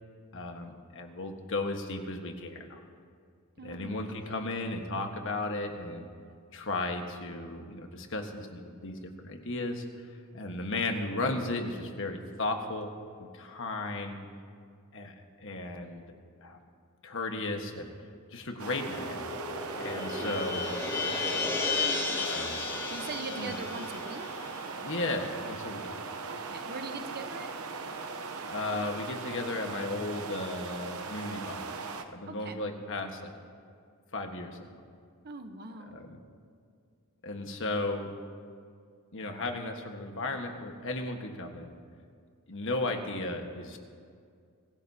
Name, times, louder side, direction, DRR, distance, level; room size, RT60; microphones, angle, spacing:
voice 1, 0.3-2.8 3.6-6.1 6.5-9.8 10.3-12.9 13.2-14.2 14.9-16.0 16.4-16.6 17.0-17.9 18.3-19.3 19.8-20.6 22.2-22.6 23.4-23.5 24.8-25.9 28.5-33.3 34.1-34.7 35.9-36.2 37.2-38.1 39.1-41.7 42.5-43.8, left 2 dB, 60° left, 4 dB, 1.5 m, -35 dB
voice 2, 3.6-4.4 20.1-20.5 21.7-24.3 26.3-27.5 32.3-32.6 35.2-36.0, right 3 dB, 45° right, 7 dB, 1.0 m, -42 dB
sound 1, 18.6-32.0, right 4 dB, 70° right, 0.9 m, -39 dB
sound 2, 18.8-25.4, left 4 dB, 15° left, 2.1 m, -34 dB
25.0 x 16.0 x 2.9 m, 2.2 s
head